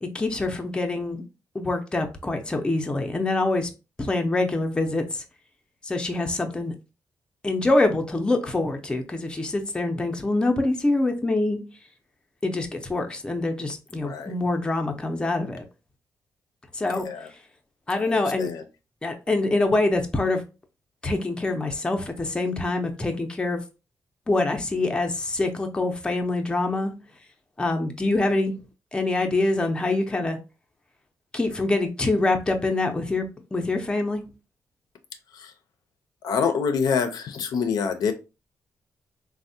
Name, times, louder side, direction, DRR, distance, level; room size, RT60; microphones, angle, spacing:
voice 1, 0.0-1.2 1.5-3.7 4.0-5.0 5.8-6.7 7.4-11.6 12.4-15.6 16.7-17.1 17.9-18.5 19.0-20.4 21.0-23.6 24.3-26.9 27.6-28.5 28.9-30.4 31.3-33.3 33.5-34.2, left 2 dB, 15° left, 4 dB, 0.4 m, -25 dB
voice 2, 14.0-14.3 16.9-17.3 18.0-18.6 35.3-35.5 36.2-38.1, left 6 dB, 80° left, 8 dB, 0.4 m, -26 dB
3.4 x 2.0 x 2.6 m, 0.29 s
cardioid pair, 125°, 7 cm